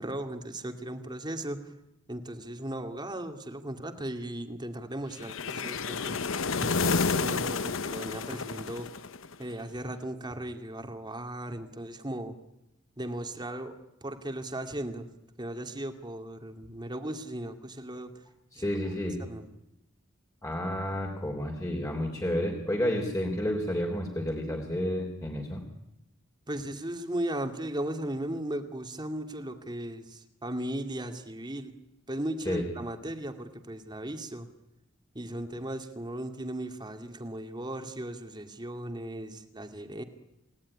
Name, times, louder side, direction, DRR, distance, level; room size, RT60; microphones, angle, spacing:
voice 1, 0.0-1.6 2.1-6.2 6.6-8.9 9.4-12.3 13.0-13.7 14.0-15.1 15.4-18.1 18.6-18.7 19.2-19.4 26.5-31.7 32.1-34.5 35.1-40.0, right 1 dB, 20° right, 6 dB, 2.4 m, -36 dB
sound 1, 5.2-9.4, left 4 dB, 70° left, 1.0 m, -30 dB
voice 2, 18.5-19.2 20.4-25.6 32.4-32.7, left 1 dB, 15° left, 1 dB, 3.4 m, -30 dB
29.5 x 18.0 x 9.9 m, 0.91 s
head